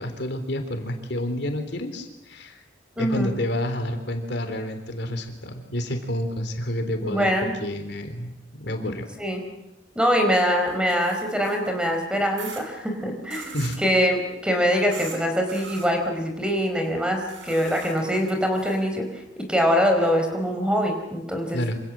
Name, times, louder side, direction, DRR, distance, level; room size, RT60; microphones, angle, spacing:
voice 1, 0.0-2.6 3.0-9.1 13.5-13.8 21.5-21.8, left 1 dB, 65° left, 6 dB, 3.6 m, -29 dB
voice 2, 3.0-3.3 7.0-7.5 9.2-9.4 9.9-19.1 19.4-21.6, equal, 5° right, 4 dB, 4.6 m, -23 dB
sound 1, 10.7-11.8 12.4-12.6 13.3-13.8 14.9-15.2 15.5-15.9 17.3-18.8, right 5 dB, 90° right, 6.0 m, -41 dB
27.0 x 26.5 x 7.5 m, 0.96 s
head